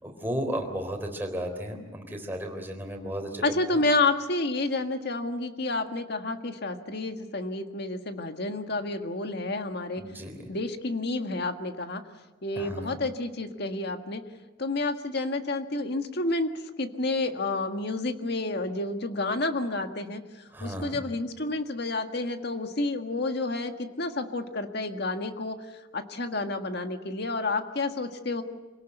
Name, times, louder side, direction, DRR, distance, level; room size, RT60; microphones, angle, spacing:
voice 1, 0.0-3.8 10.0-10.5 12.6-13.0 20.5-21.0, equal, 10° right, 3 dB, 3.8 m, -34 dB
voice 2, 3.4-10.0 10.5-12.0 12.4-14.2 14.6-16.5 16.8-20.2 20.6-23.7 24.0-25.6 25.9-28.4, left 2 dB, 60° left, 6 dB, 1.7 m, -30 dB
26.0 x 18.0 x 8.0 m, 1.2 s
head